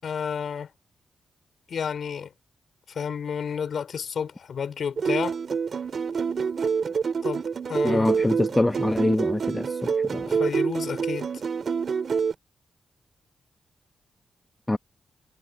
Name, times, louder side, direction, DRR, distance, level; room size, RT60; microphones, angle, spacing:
voice 1, 0.0-0.7 1.7-2.3 2.9-5.4 7.2-7.4 7.7-8.1 10.3-11.3, left 7 dB, 70° left, 5.0 m, -31 dB
sound 1, 5.0-12.3, right 6 dB, 60° right, 5.5 m, -27 dB
voice 2, 7.8-10.4 14.7-14.8, left 1 dB, 20° left, 1.3 m, -25 dB
supercardioid pair, 45°, 0 cm